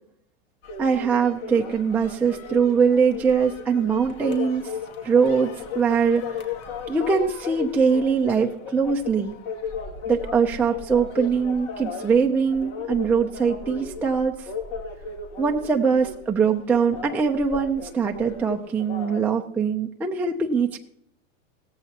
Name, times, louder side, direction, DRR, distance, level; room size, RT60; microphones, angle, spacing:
sound 1, 0.6-19.2, left 5 dB, 60° left, 2.5 m, -36 dB
voice 1, 0.8-4.7 5.0-6.4 6.9-9.3 10.1-14.5 15.4-20.8, right 5 dB, 5° right, 1 dB, 0.5 m, -22 dB
17.5 x 14.0 x 2.9 m, 0.73 s
supercardioid pair, 135°, 40 cm